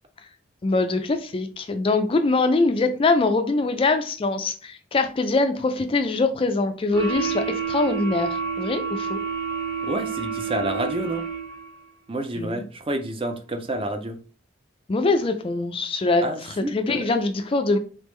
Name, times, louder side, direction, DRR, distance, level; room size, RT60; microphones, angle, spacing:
voice 1, 0.6-9.2 12.4-12.6 14.9-16.3 16.6-17.8, left 3 dB, 30° left, 0.4 m, -23 dB
sound 1, 6.9-11.8, right 6 dB, 75° right, 1.5 m, -29 dB
voice 2, 9.8-11.2 12.1-14.2 16.2-17.0, right 1 dB, 30° right, 0.5 m, -29 dB
4.0 x 3.5 x 3.1 m
head